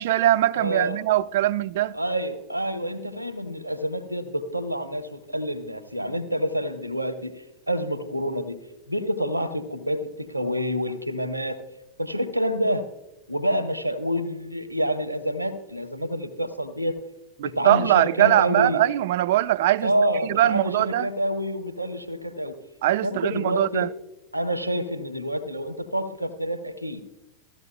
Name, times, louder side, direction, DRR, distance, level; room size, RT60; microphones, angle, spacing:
voice 1, 0.0-2.0 17.4-19.9 20.3-21.1 22.8-23.9, right 14 dB, 55° right, 0.3 m, -21 dB
voice 2, 0.5-1.0 1.9-8.6 8.9-11.6 12.0-12.9 13.3-17.0 17.4-18.8 19.8-22.6 23.0-23.9 24.3-27.0, equal, 85° right, 0.8 m, -28 dB
16.5 x 14.0 x 2.2 m
figure-of-eight pair, 90°, 0 cm